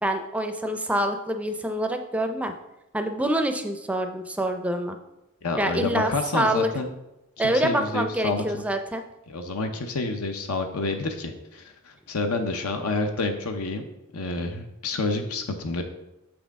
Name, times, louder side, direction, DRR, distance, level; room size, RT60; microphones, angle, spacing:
voice 1, 0.0-2.5 2.9-5.0 5.5-6.7 7.4-9.0, right 1 dB, 5° right, 6 dB, 0.4 m, -26 dB
voice 2, 5.4-6.9 7.4-8.6 9.3-13.9 14.1-15.8, left 3 dB, 90° left, 5 dB, 0.7 m, -29 dB
6.5 x 6.1 x 3.6 m, 0.93 s
head